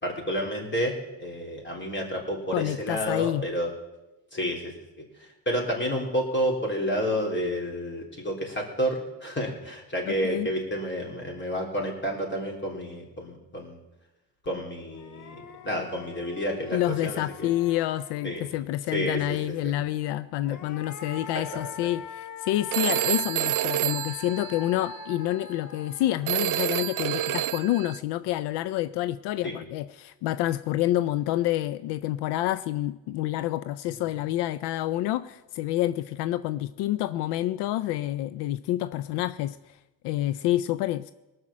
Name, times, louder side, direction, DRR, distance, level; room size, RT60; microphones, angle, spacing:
voice 1, 0.0-3.7 4.3-4.8 5.1-13.8 14.4-17.5 18.2-18.4 18.9-19.7 20.5-20.6 21.3-21.8 29.4-29.6 34.1-34.2, equal, 30° left, -1 dB, 3.8 m, -30 dB
voice 2, 2.5-3.4 10.1-10.5 16.7-39.8 40.0-41.1, left 14 dB, 80° left, 15 dB, 0.5 m, -28 dB
sound 1, 14.4-14.5 14.9-18.6 20.2-27.5, left 5 dB, 50° left, 1.1 m, -44 dB
Telephone, 22.7-25.1 26.3-28.0, right 14 dB, 55° right, 0.5 m, -28 dB
18.5 x 6.4 x 7.4 m, 1.0 s
supercardioid pair, 80°, 40 cm